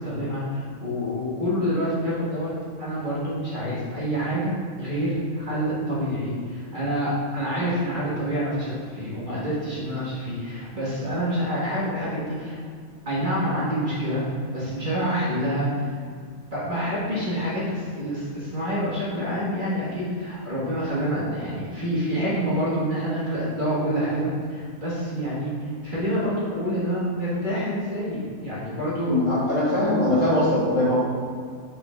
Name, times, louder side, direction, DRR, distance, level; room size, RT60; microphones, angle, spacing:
voice 1, 0.0-2.5 2.8-12.6 13.1-14.2 14.5-15.9 16.5-29.4, equal, 35° right, -9 dB, 1.7 m, -27 dB
voice 2, 29.0-31.0, left 1 dB, 60° left, -7 dB, 2.2 m, -21 dB
6.6 x 4.4 x 3.5 m, 2.1 s
omnidirectional pair, 1.5 m